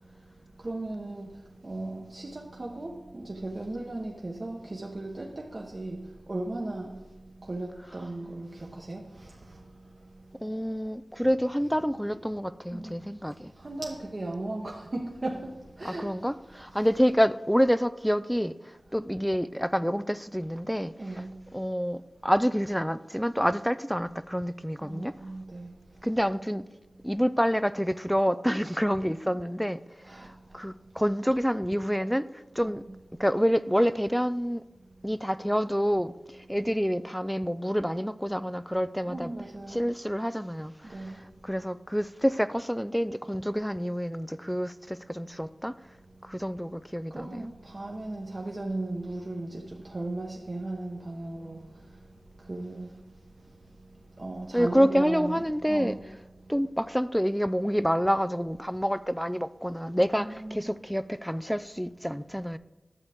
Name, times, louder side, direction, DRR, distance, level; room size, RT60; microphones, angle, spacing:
voice 1, 0.6-9.9 11.2-11.3 12.1-12.2 12.7-12.9 13.6-16.1 16.5-16.9 21.0-21.4 24.8-25.7 26.0-26.3 30.0-30.6 32.5-33.0 39.1-39.8 40.8-41.4 47.1-51.6 51.9-52.0 52.4-53.0 54.2-56.1 60.2-60.7, right 2 dB, 45° right, 0.9 m, -37 dB
voice 2, 10.4-13.5 15.8-21.2 21.5-25.1 26.0-26.7 27.0-32.8 33.2-34.6 35.0-39.3 39.7-45.7 46.2-47.5 54.5-55.9 56.5-62.6, equal, ahead, 0.3 m, -28 dB
10.5 x 7.1 x 3.5 m
wide cardioid pair, 50°, 0 cm